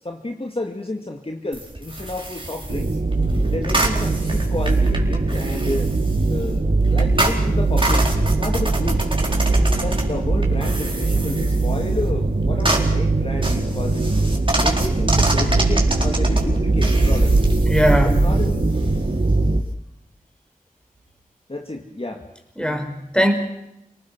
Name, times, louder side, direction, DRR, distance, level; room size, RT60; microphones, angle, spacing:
voice 1, 0.0-3.0 3.5-5.9 6.3-9.1 9.8-14.1 14.6-17.4 18.0-18.6 21.5-22.3, left 2 dB, 40° left, 3 dB, 2.3 m, -31 dB
sound 1, 1.5-19.7, right 1 dB, 35° right, 4.3 m, -29 dB
sound 2, 2.7-19.6, right 2 dB, 60° right, 1.7 m, -20 dB
voice 2, 17.7-18.2 22.6-23.3, equal, 5° left, 4 dB, 5.5 m, -20 dB
29.5 x 19.0 x 6.2 m, 0.84 s
wide cardioid pair, 45°, 15 cm